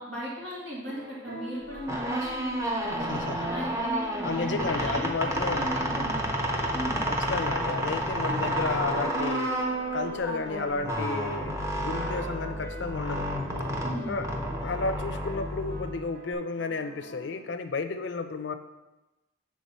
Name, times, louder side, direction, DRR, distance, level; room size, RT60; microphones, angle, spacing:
voice 1, 0.0-6.3 6.7-7.1 13.8-14.2, right 1 dB, 90° right, -5 dB, 2.0 m, -36 dB
sound 1, 0.9-17.4, equal, 70° right, 1.3 m, -44 dB
sound 2, 1.7-16.3, equal, 15° right, 0.6 m, -31 dB
voice 2, 3.0-3.5 4.2-5.7 7.1-9.6 9.9-13.3 14.1-14.3 14.6-18.5, left 4 dB, 75° left, 8 dB, 0.5 m, -32 dB
7.5 x 3.6 x 5.4 m, 1.0 s
head